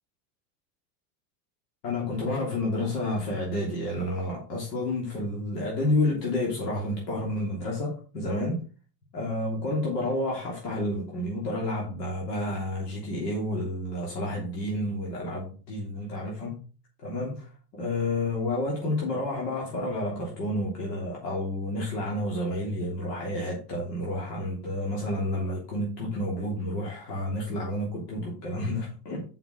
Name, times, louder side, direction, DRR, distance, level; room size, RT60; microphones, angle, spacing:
voice 1, 1.8-8.6 9.1-16.6 17.0-29.2, left 1 dB, 85° left, -2 dB, 3.3 m, -30 dB
7.1 x 5.8 x 5.2 m, 0.36 s
supercardioid pair, 115°, 47 cm